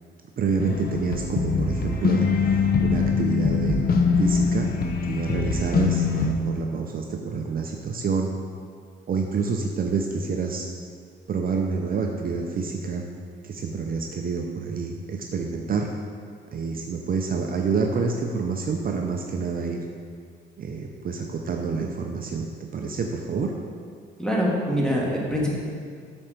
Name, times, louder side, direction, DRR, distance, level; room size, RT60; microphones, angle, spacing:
voice 1, 0.4-4.7 5.1-8.3 9.1-10.7 11.3-13.0 13.4-15.9 16.5-19.9 20.6-22.5 22.7-23.5, right 5 dB, 45° right, 2 dB, 0.6 m, -28 dB
sound 1, 0.6-6.3, left 5 dB, 50° left, 0.8 m, -23 dB
voice 2, 24.2-25.5, equal, 5° left, -4 dB, 1.8 m, -24 dB
8.3 x 4.4 x 5.2 m, 2.1 s
cardioid pair, 90°, 20 cm